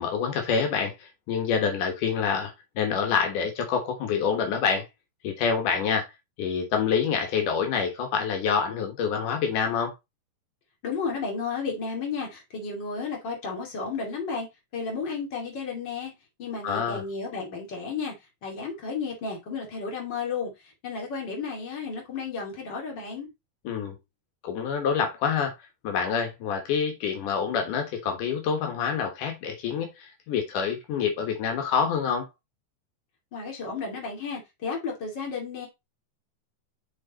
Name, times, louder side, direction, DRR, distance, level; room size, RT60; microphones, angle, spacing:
voice 1, 0.0-4.9 5.2-6.1 6.4-9.9 16.6-17.0 23.6-24.0 24.4-25.5 25.8-32.3, left 6 dB, 85° left, 3.0 m, -27 dB
voice 2, 10.8-14.5 14.7-16.1 16.4-18.1 18.4-20.5 20.8-23.3 33.3-35.7, left 5 dB, 35° left, 3.0 m, -33 dB
6.4 x 4.7 x 4.1 m
omnidirectional pair, 3.5 m